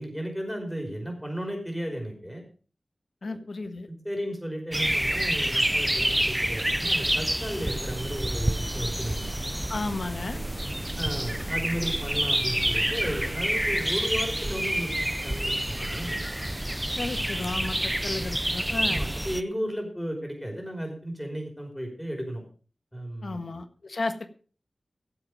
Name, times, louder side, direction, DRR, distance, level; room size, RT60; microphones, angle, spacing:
voice 1, 0.0-2.4 3.2-3.4 3.9-9.3 11.0-16.2 18.8-22.4 22.9-23.5, equal, 5° left, 2 dB, 5.3 m, -34 dB
voice 2, 3.2-3.9 9.7-10.5 16.9-19.1 23.2-24.2, left 3 dB, 65° left, 9 dB, 1.5 m, -33 dB
sound 1, 4.7-19.4, right 1 dB, 10° right, 0.5 m, -28 dB
sound 2, 7.7-13.8, right 2 dB, 45° right, 4.4 m, -41 dB
16.0 x 7.8 x 5.1 m, 0.39 s
wide cardioid pair, 80°, 0 cm